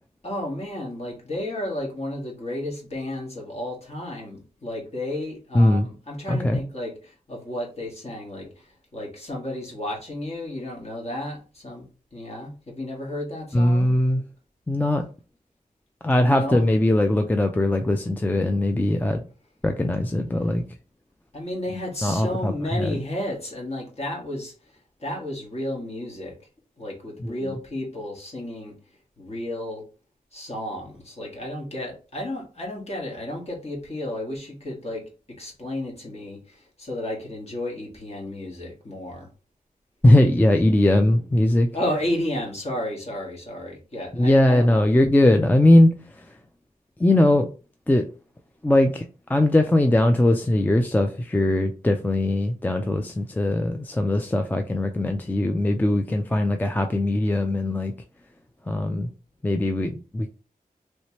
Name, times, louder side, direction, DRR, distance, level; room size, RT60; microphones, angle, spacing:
voice 1, 0.2-13.9 16.2-16.7 20.4-20.5 21.3-24.5 25.0-26.3 26.8-28.7 29.2-29.8 30.3-35.0 35.4-39.3 41.7-44.8, left 1 dB, 45° left, 1.5 m, -32 dB
voice 2, 5.5-5.9 6.3-6.6 13.5-14.2 14.7-15.0 16.0-19.3 19.6-20.6 22.0-23.0 27.2-27.5 40.0-41.7 44.1-46.4 47.0-47.5 47.9-48.0 48.6-49.0 49.3-57.9 58.7-59.1 59.4-60.3, left 1 dB, 10° left, 0.3 m, -20 dB
3.1 x 3.0 x 2.9 m
wide cardioid pair, 70°, 15 cm